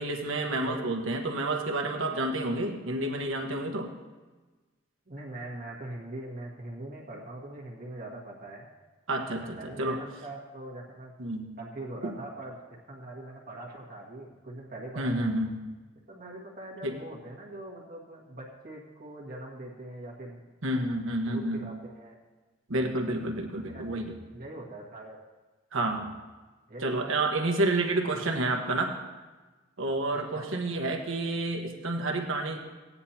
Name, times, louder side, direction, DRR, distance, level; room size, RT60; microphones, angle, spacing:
voice 1, 0.0-3.9 9.1-10.0 11.2-11.5 12.0-12.1 15.0-15.6 16.8-16.9 20.6-21.6 22.7-24.1 25.7-26.1 26.8-29.0 29.8-32.6, right 2 dB, 80° right, 2 dB, 1.4 m, -29 dB
voice 2, 5.1-8.7 9.4-11.1 11.6-15.3 16.1-20.4 21.2-22.2 23.7-24.1 24.3-25.2 26.7-27.2 28.0-28.2 30.3-30.5, right 1 dB, 45° right, -3 dB, 1.7 m, -42 dB
17.0 x 9.7 x 2.9 m, 1.2 s
head